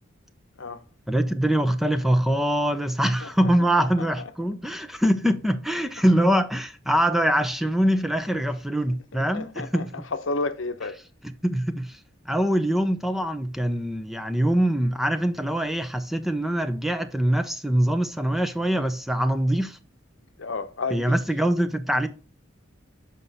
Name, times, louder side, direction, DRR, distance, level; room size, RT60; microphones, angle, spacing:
voice 1, 1.1-9.9 11.4-12.0 12.3-19.8 20.9-22.1, right 1 dB, ahead, 0.6 m, -23 dB
voice 2, 3.8-4.3 9.1-11.0 20.4-21.2, left 3 dB, 80° left, 0.9 m, -32 dB
8.0 x 5.5 x 4.0 m
head